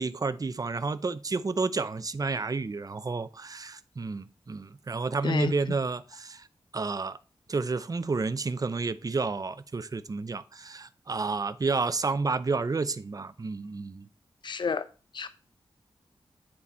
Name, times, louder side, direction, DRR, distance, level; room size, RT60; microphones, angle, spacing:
voice 1, 0.0-6.5 6.7-7.2 7.5-14.1, right 4 dB, 35° right, 0.6 m, -30 dB
voice 2, 14.4-14.8 15.1-15.3, left 5 dB, 50° left, 0.5 m, -29 dB
9.8 x 4.2 x 4.3 m
cardioid pair, 65°, 10 cm